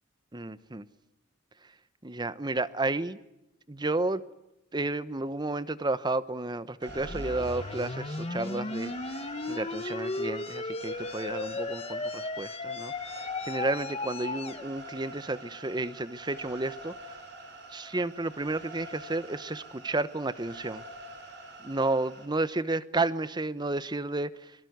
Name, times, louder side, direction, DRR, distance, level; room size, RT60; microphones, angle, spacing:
voice 1, 0.3-0.8 2.0-3.2 3.7-4.2 4.7-17.1 17.7-20.8 21.6-24.3, right 2 dB, 20° right, 15 dB, 0.9 m, -32 dB
sound 1, 6.8-22.3, right 1 dB, 60° right, 6.6 m, -46 dB
sound 2, 6.9-14.7, left 2 dB, 30° left, 1.0 m, -35 dB
25.5 x 23.0 x 9.4 m, 0.84 s
head